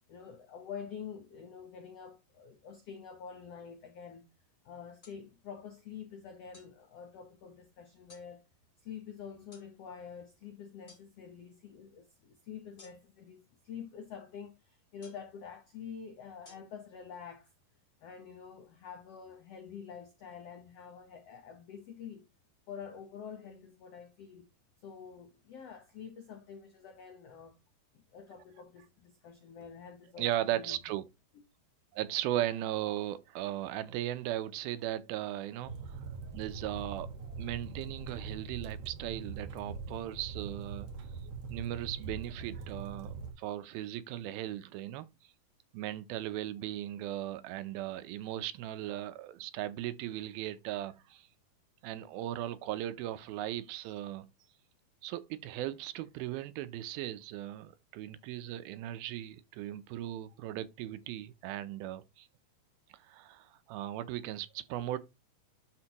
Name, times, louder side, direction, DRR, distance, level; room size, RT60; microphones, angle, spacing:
voice 1, 0.1-4.3 4.6-8.4 8.8-17.5 18.0-22.3 22.7-24.5 24.8-27.6 27.9-31.0, left 7 dB, 80° left, 1.4 m, -47 dB
sound 1, 5.0-5.2 6.5-6.7 8.1-8.3 9.5-9.7 10.9-11.0 12.8-13.2 15.0-15.3 16.4-16.5, left 2 dB, 25° left, 1.8 m, -56 dB
voice 2, 30.2-31.0 31.9-40.9 41.2-45.1 45.7-51.3 51.8-54.3 55.0-62.3 63.1-65.0, right 13 dB, 80° right, 2.5 m, -37 dB
sound 2, 35.6-43.3, right 5 dB, 50° right, 2.3 m, -42 dB
11.5 x 4.4 x 2.9 m
omnidirectional pair, 4.3 m